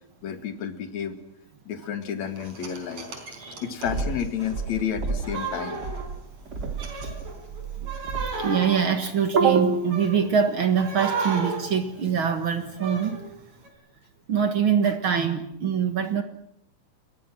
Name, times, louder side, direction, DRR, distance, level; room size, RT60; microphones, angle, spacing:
voice 1, 0.2-1.2 1.7-3.1 3.6-5.8, left 8 dB, 50° left, 8 dB, 2.8 m, -31 dB
sound 1, 2.4-6.4 6.7-10.3 10.8-13.3 13.6-13.7, right 4 dB, 40° right, 5.5 m, -34 dB
sound 2, 3.8-5.4 5.7-8.5, right 4 dB, 25° right, 3.8 m, -32 dB
voice 2, 8.4-13.3 14.3-16.2, right 7 dB, 75° right, 8 dB, 1.1 m, -23 dB
30.0 x 22.0 x 6.2 m, 0.70 s
omnidirectional pair, 4.8 m